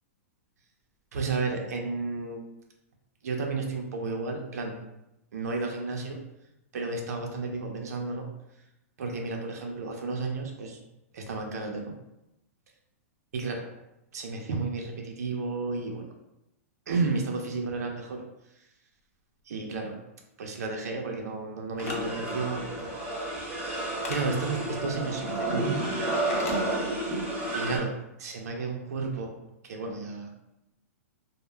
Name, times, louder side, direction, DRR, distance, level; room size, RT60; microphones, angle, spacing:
voice 1, 1.1-2.4 3.2-4.7 5.3-6.2 6.7-8.3 9.0-10.8 11.1-11.9 13.3-13.7 14.1-16.1 16.9-18.2 19.5-19.9 20.4-22.9 24.1-25.9 27.5-27.9 28.2-29.4 29.6-30.3, right 3 dB, 90° right, 2 dB, 0.4 m, -32 dB
sound 1, 21.8-22.0 24.0-24.2 26.3-26.6, left 3 dB, 60° left, 0.5 m, -36 dB
sound 2, 21.8-27.8, right 1 dB, 15° right, 0.3 m, -31 dB
2.1 x 2.0 x 3.1 m, 0.89 s
supercardioid pair, 180°, 8 cm